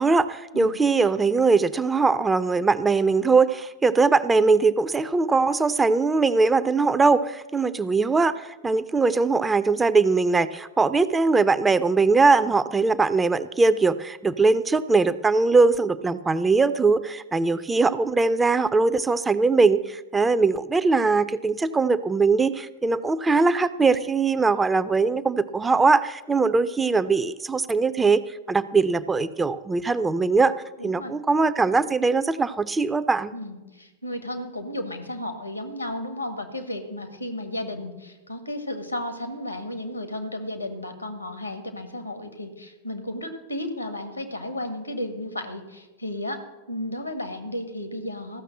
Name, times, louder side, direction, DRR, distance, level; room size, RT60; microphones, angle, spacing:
voice 1, 0.0-30.5 30.8-33.3, right 4 dB, 15° right, 13 dB, 0.5 m, -21 dB
voice 2, 30.8-31.1 33.3-46.4 46.7-48.4, left 1 dB, 85° left, 8 dB, 1.6 m, -33 dB
14.5 x 6.4 x 7.7 m, 1.1 s
figure-of-eight pair, 90°, 0 cm